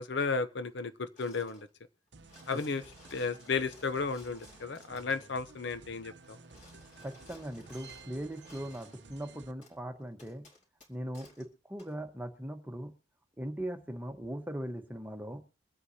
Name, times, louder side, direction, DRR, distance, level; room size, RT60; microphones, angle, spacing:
voice 1, 0.0-1.7 2.5-2.8 3.1-6.4, left 4 dB, 65° left, 11 dB, 0.7 m, -34 dB
sound 1, 1.2-1.7 2.1-5.3 6.2-9.0 9.6-9.8 10.2-11.5 11.8-11.9, left 2 dB, 40° left, 2.7 m, -58 dB
sound 2, 2.1-9.5, right 4 dB, 65° right, 0.8 m, -54 dB
voice 2, 7.0-10.4 10.9-12.9 13.4-15.4, right 1 dB, 10° right, 6 dB, 1.1 m, -40 dB
23.5 x 8.0 x 2.8 m, 0.35 s
head